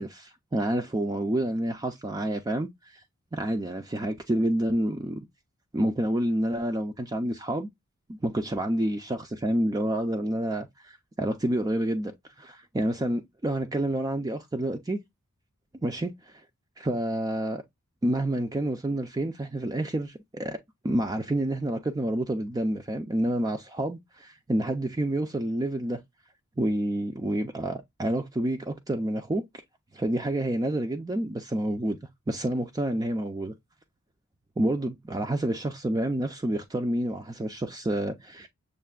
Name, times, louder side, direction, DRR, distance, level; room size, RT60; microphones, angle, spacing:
voice 1, 0.0-3.0 3.3-5.2 5.7-7.7 8.2-12.1 12.4-15.0 15.8-16.4 16.8-17.6 18.0-20.6 20.8-26.0 26.6-29.4 29.9-32.0 32.3-33.5 34.6-38.5, right 1 dB, 15° right, 0.4 m, -28 dB
6.5 x 2.5 x 2.3 m
head